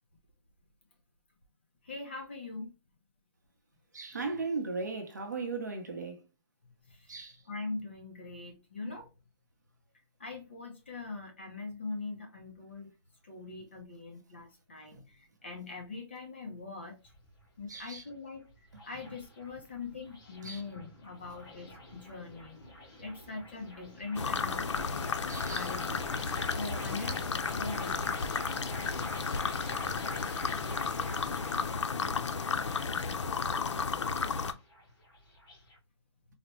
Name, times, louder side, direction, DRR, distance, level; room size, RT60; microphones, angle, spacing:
voice 1, 1.8-2.7 6.8-7.1 7.5-9.1 10.2-12.9 13.2-17.0 17.6-18.5 18.8-22.6 23.0-24.6 25.4-26.0 26.4-27.2 27.5-28.3, left 3 dB, 25° left, 0.6 m, -42 dB
voice 2, 3.9-6.2 7.1-7.4 14.9-15.0 17.7-18.0 20.4-20.6 25.3-25.7, right 4 dB, 40° right, 0.7 m, -37 dB
sound 1, 16.8-35.8, left 1 dB, 45° left, 2.0 m, -48 dB
sound 2, 24.2-34.5, left 5 dB, 90° left, 0.5 m, -33 dB
4.0 x 2.1 x 3.0 m
hypercardioid pair, 180°, 15 cm